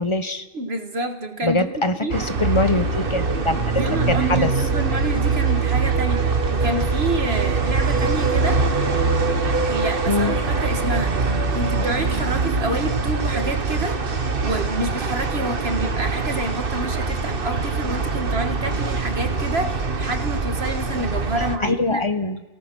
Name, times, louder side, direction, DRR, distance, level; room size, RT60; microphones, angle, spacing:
voice 1, 0.0-0.4 1.4-4.5 10.1-10.3 21.6-22.4, left 2 dB, 30° left, 11 dB, 1.1 m, -23 dB
voice 2, 0.5-2.2 3.7-8.6 9.6-14.0 14.4-22.1, right 1 dB, 75° right, 6 dB, 2.1 m, -28 dB
sound 1, 2.1-21.6, right 4 dB, 60° right, 1.6 m, -23 dB
28.5 x 18.0 x 6.3 m, 1.1 s
omnidirectional pair, 1.1 m